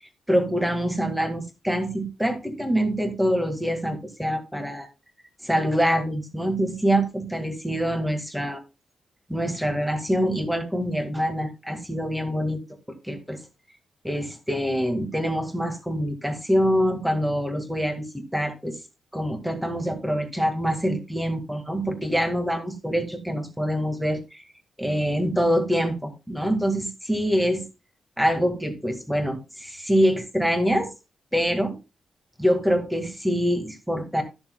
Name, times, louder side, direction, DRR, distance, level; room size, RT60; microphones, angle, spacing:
voice 1, 0.3-4.9 5.4-8.6 9.3-12.6 13.0-13.4 14.0-18.8 19.1-24.4 24.8-27.6 28.2-30.9 31.3-31.8 32.4-34.2, equal, 5° right, 5 dB, 1.8 m, -25 dB
13.5 x 7.0 x 2.3 m, 0.27 s
wide cardioid pair, 170°, 0 cm